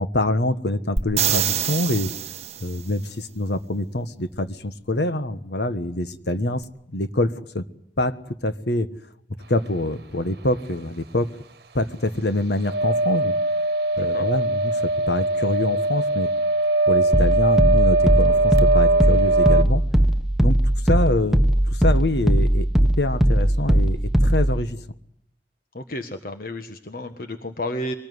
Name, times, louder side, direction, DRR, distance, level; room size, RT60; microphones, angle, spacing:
voice 1, 0.0-2.1 2.6-6.6 6.9-7.6 8.0-8.2 8.4-8.9 9.5-11.3 11.7-13.3 14.0-16.3 16.9-19.8 20.4-20.6 20.8-22.7 23.0-24.8, left 1 dB, 70° left, 12 dB, 1.4 m, -25 dB
sound 1, 1.0-2.8 6.6-6.7, right 8 dB, 35° right, 1.2 m, -25 dB
sound 2, 12.7-19.6, right 2 dB, 60° right, 1.5 m, -21 dB
sound 3, 17.1-24.6, right 1 dB, ahead, 1.0 m, -19 dB
voice 2, 25.7-27.9, left 1 dB, 55° left, 7 dB, 1.5 m, -32 dB
23.5 x 19.5 x 9.6 m, 0.74 s
head